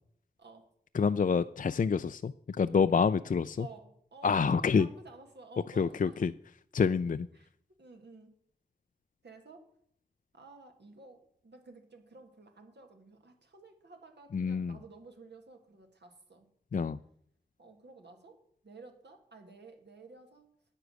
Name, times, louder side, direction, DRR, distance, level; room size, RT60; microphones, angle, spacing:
voice 1, 0.9-3.7 4.2-4.9 5.8-6.3 6.7-7.3 14.3-14.8 16.7-17.0, left 5 dB, 50° left, 13 dB, 0.4 m, -27 dB
voice 2, 3.6-6.2 7.3-7.5 7.8-8.3 9.2-9.7 10.3-16.5 17.6-20.5, right 3 dB, 90° right, 4 dB, 1.8 m, -53 dB
9.8 x 8.0 x 6.3 m, 0.66 s
wide cardioid pair, 45°, 17 cm